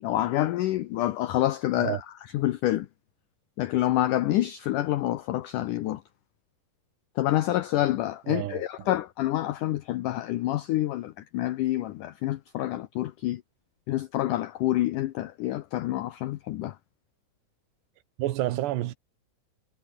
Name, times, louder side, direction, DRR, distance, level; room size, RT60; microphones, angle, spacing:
voice 1, 0.0-2.0 2.3-2.9 3.6-6.0 7.2-13.4 13.9-16.8, left 14 dB, 80° left, 1.9 m, -27 dB
voice 2, 8.3-8.9 18.2-18.9, right 15 dB, 90° right, 3.4 m, -29 dB
omnidirectional pair, 4.7 m